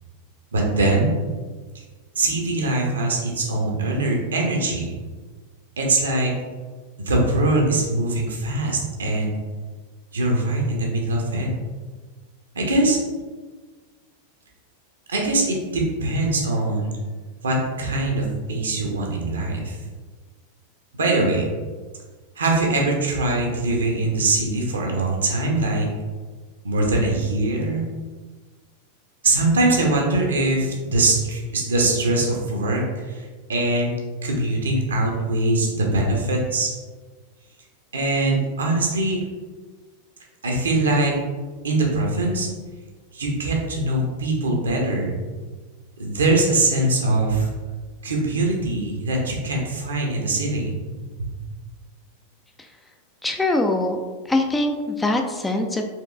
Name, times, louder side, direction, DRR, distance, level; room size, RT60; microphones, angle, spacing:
voice 1, 0.5-1.1 2.2-5.0 5.8-6.3 7.0-9.3 10.1-11.5 12.5-13.0 15.1-16.9 17.4-19.8 21.0-21.4 22.4-25.9 26.6-27.8 29.2-33.9 34.2-36.7 37.9-39.2 40.4-41.1 41.6-42.5 43.1-45.2 46.0-47.5 48.0-50.7, right 2 dB, 70° right, 0 dB, 0.8 m, -22 dB
voice 2, 53.2-54.0 54.3-55.8, left 2 dB, 10° left, 4 dB, 0.3 m, -22 dB
4.4 x 3.0 x 2.4 m, 1.4 s
figure-of-eight pair, 90°, 0 cm